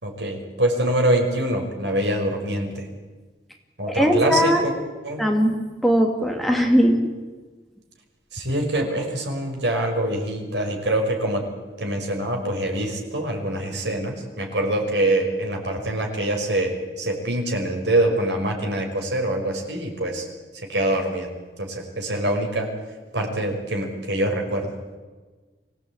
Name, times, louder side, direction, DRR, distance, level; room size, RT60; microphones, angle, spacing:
voice 1, 0.0-2.9 3.8-4.7 5.0-5.2 8.3-11.5 11.8-20.3 20.7-21.3 21.6-22.7 23.1-24.7, right 1 dB, 80° right, 2 dB, 5.5 m, -24 dB
voice 2, 3.9-4.6 5.2-5.6 5.8-7.0, equal, ahead, 2 dB, 2.5 m, -19 dB
25.0 x 17.0 x 8.8 m, 1.3 s
head